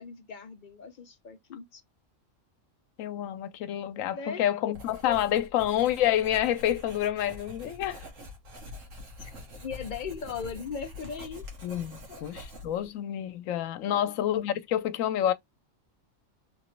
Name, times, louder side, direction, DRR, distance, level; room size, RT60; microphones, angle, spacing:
voice 1, 0.0-1.8 4.1-4.4 5.0-5.2 9.2-9.3 9.6-11.4 12.1-12.4 13.9-14.1, left 6 dB, 60° left, 0.5 m, -38 dB
voice 2, 3.0-8.0 11.6-15.3, left 11 dB, 85° left, 1.0 m, -28 dB
Writing, 4.7-12.9, left 2 dB, 75° right, 1.6 m, -45 dB
3.4 x 2.9 x 3.1 m
omnidirectional pair, 1.3 m